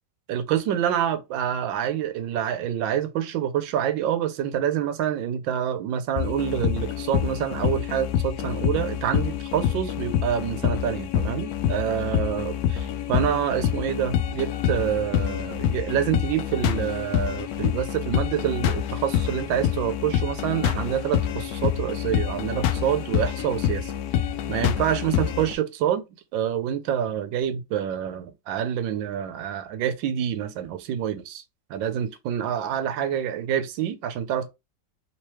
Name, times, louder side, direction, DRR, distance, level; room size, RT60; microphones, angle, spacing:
voice 1, 0.3-23.9 24.5-26.0 26.3-31.4 31.7-34.5, right 9 dB, 85° right, 1.3 m, -27 dB
sound 1, 6.2-25.5, left 10 dB, 75° left, 0.8 m, -27 dB
3.6 x 3.0 x 3.1 m
omnidirectional pair, 2.1 m